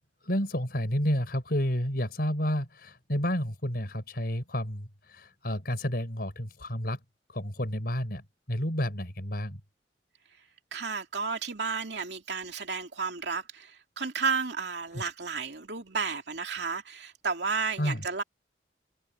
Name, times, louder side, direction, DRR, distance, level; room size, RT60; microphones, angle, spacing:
voice 1, 0.2-7.0 7.3-8.2 8.5-9.6 14.9-15.0 17.8-18.1, equal, 60° left, 5.5 m, -30 dB
voice 2, 10.7-18.2, right 5 dB, 70° right, 2.7 m, -32 dB
head